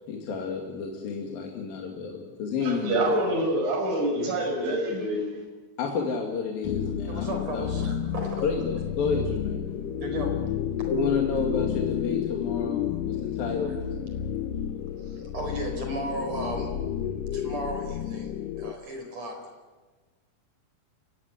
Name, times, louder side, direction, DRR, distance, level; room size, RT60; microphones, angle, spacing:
voice 1, 0.1-3.1 5.8-7.3 7.5-7.7 8.4-9.6 10.9-13.8, left 5 dB, 55° left, 1 dB, 3.8 m, -30 dB
voice 2, 2.6-5.3, right 1 dB, 75° right, 0 dB, 8.3 m, -26 dB
sound 1, 6.6-18.7, left 9 dB, 85° left, 1.9 m, -31 dB
voice 3, 7.1-8.5 10.0-10.3 13.7-13.8 15.0-16.7 17.3-19.4, equal, 35° right, 4 dB, 5.3 m, -34 dB
28.0 x 17.5 x 9.9 m, 1.3 s
omnidirectional pair, 5.4 m